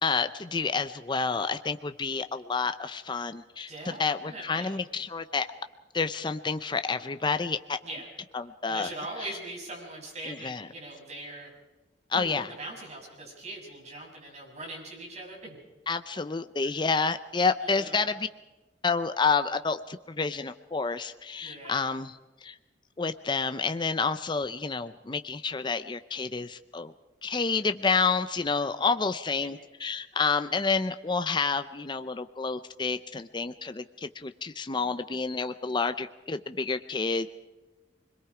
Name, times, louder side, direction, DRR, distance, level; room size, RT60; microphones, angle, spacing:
voice 1, 0.0-5.5 5.9-7.8 8.3-8.9 10.2-10.7 12.1-12.5 15.9-18.3 18.8-22.6 23.0-26.9 27.2-37.3, left 4 dB, 25° left, 10 dB, 0.6 m, -29 dB
voice 2, 3.7-4.8 7.8-8.1 8.7-11.5 12.1-15.6 17.6-18.1 21.4-21.9 29.4-29.5, right 2 dB, 40° right, -1 dB, 7.1 m, -41 dB
26.0 x 21.5 x 4.9 m, 1.1 s
head